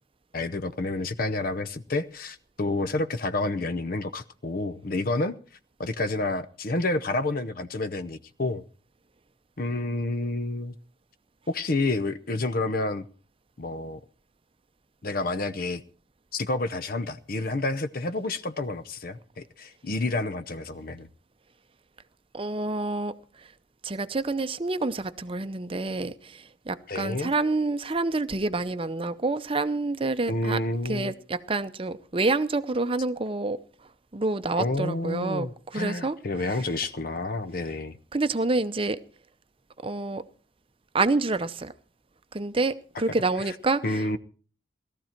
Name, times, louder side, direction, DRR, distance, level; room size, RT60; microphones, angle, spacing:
voice 1, 0.3-5.4 5.8-8.6 9.6-10.8 11.5-13.0 13.6-14.0 15.0-15.8 16.3-21.1 26.9-27.3 30.3-31.1 34.6-38.0 42.9-43.0 43.3-43.6 43.8-44.2, left 2 dB, 50° left, 12 dB, 0.7 m, -29 dB
voice 2, 22.3-23.1 23.8-30.6 30.9-33.6 34.1-35.5 35.7-36.6 38.1-39.0 39.8-40.2 40.9-41.7 42.3-44.2, right 3 dB, 30° right, 12 dB, 0.7 m, -28 dB
18.0 x 13.5 x 4.4 m, 0.40 s
head